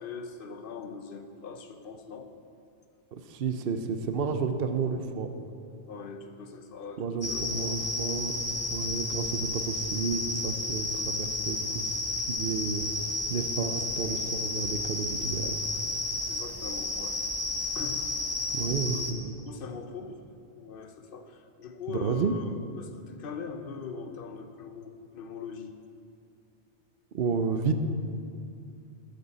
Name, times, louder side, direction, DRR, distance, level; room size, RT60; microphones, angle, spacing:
voice 1, 0.0-2.3 5.9-7.8 16.3-17.2 17.7-18.1 18.8-19.1 19.4-20.2 20.5-25.7, left 5 dB, 55° left, 7 dB, 1.0 m, -41 dB
voice 2, 3.1-5.3 7.0-8.4 8.7-11.9 12.3-15.6 18.5-19.4 21.9-22.3 27.1-27.7, right 5 dB, 55° right, 8 dB, 0.9 m, -31 dB
sound 1, 7.2-19.1, left 2 dB, 20° left, 0.9 m, -32 dB
13.0 x 13.0 x 4.1 m, 2.4 s
omnidirectional pair, 1.2 m